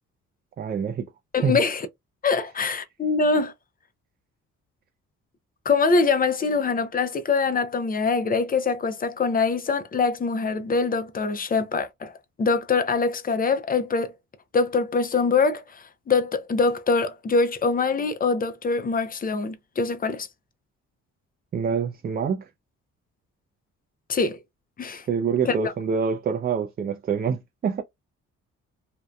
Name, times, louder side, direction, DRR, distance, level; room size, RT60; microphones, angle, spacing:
voice 1, 0.6-1.1 1.4-1.6 21.5-22.5 25.1-27.8, right 6 dB, 35° right, 0.4 m, -26 dB
voice 2, 1.3-1.9 2.2-3.5 5.7-12.1 12.4-14.1 14.5-20.3 24.1-24.4 24.8-25.0 25.4-25.7, left 4 dB, 30° left, 0.5 m, -24 dB
2.6 x 2.1 x 2.2 m
cardioid pair, 90°, 30 cm